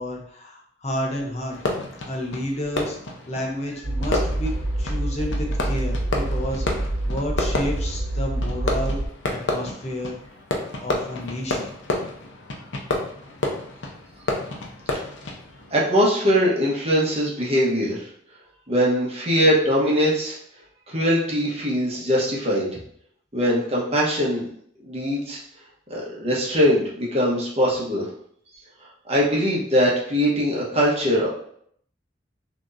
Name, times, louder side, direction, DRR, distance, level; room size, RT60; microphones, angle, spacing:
voice 1, 0.0-1.6 2.1-3.0 3.3-9.0 9.3-10.2 10.8-11.7, left 1 dB, 35° left, 0 dB, 0.8 m, -30 dB
Fireworks, 1.5-15.7, left 2 dB, 85° left, 0.8 m, -30 dB
sound 1, 3.8-9.1, right 1 dB, 75° right, 0.9 m, -26 dB
voice 2, 15.7-18.0 18.7-20.4 20.9-22.7 23.3-24.5 24.8-25.4 25.9-28.1 29.1-31.3, equal, 35° right, -4 dB, 1.1 m, -21 dB
6.1 x 3.0 x 2.6 m, 0.65 s
head